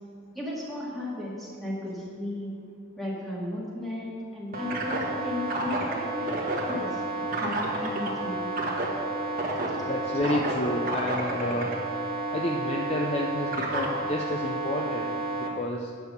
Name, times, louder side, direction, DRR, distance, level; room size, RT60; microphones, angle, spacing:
voice 1, 0.3-2.5 3.0-7.0 7.4-8.4, left 1 dB, ahead, -7 dB, 2.2 m, -35 dB
sound 1, 4.5-15.5, right 2 dB, 45° right, 1.4 m, -30 dB
voice 2, 9.9-11.7 12.3-15.9, left 1 dB, 30° left, 1 dB, 0.5 m, -30 dB
9.7 x 6.3 x 6.5 m, 2.4 s
head